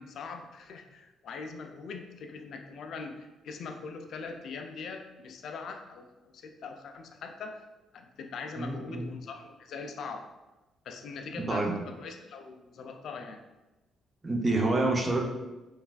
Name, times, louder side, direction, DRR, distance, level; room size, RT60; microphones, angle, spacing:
voice 1, 0.0-7.7 7.9-10.3 10.8-13.4, left 4 dB, 70° left, 5 dB, 0.3 m, -42 dB
voice 2, 8.6-9.1 11.4-11.8 14.2-15.3, right 2 dB, 30° right, 1 dB, 0.5 m, -28 dB
3.1 x 2.4 x 2.3 m, 1.1 s
cardioid pair, 90°, 0 cm